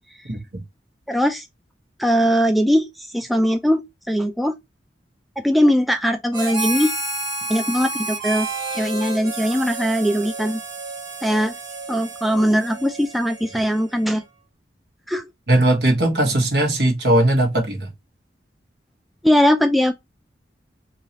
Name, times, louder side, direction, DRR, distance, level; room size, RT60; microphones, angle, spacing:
voice 1, 0.3-0.6 15.5-17.9, right 1 dB, 65° right, 1.4 m, -19 dB
voice 2, 1.1-1.5 2.0-4.5 5.4-6.9 7.5-8.5 8.7-10.6 11.2-11.5 11.9-14.2 15.1-15.3 19.2-19.9, equal, ahead, 0.3 m, -20 dB
Harmonica, 6.3-14.1, right 2 dB, 25° right, 1.4 m, -30 dB
3.9 x 2.9 x 2.9 m
head